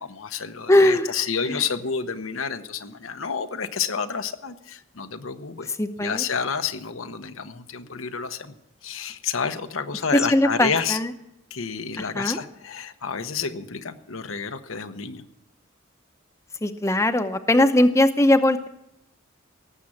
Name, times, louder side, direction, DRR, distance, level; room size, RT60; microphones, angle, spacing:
voice 1, 0.1-5.7 6.0-8.5 8.8-11.0 11.5-15.2, left 6 dB, 85° left, 8 dB, 1.0 m, -29 dB
voice 2, 0.7-1.1 1.5-1.6 5.8-6.2 10.1-11.1 12.0-12.4 16.6-18.7, left 1 dB, 15° left, 8 dB, 0.7 m, -20 dB
18.0 x 7.5 x 8.5 m, 0.83 s
head